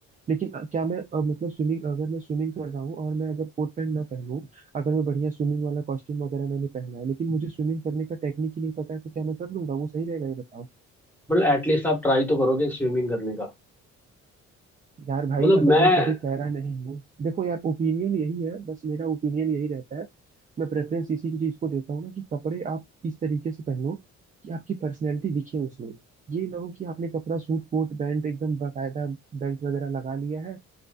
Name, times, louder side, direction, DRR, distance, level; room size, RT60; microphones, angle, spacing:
voice 1, 0.3-10.7 15.0-20.1 20.6-24.0 24.4-26.0 26.3-30.6, right 5 dB, 25° right, 0.4 m, -29 dB
voice 2, 11.3-13.5 15.4-16.1, left 1 dB, 5° left, 1.1 m, -21 dB
2.5 x 2.2 x 2.2 m
cardioid pair, 90°, 30 cm